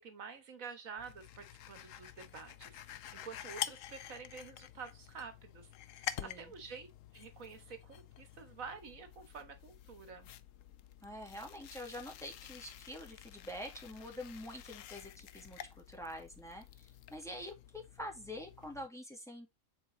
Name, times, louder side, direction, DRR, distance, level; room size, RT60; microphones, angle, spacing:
voice 1, 0.0-6.9 7.1-10.3, right 5 dB, 90° right, 1.8 m, -49 dB
sound 1, 1.0-18.9, left 11 dB, 80° left, 1.0 m, -48 dB
voice 2, 6.0-6.5 11.0-19.5, equal, ahead, 2.0 m, -46 dB
7.3 x 4.3 x 3.8 m
omnidirectional pair, 1.4 m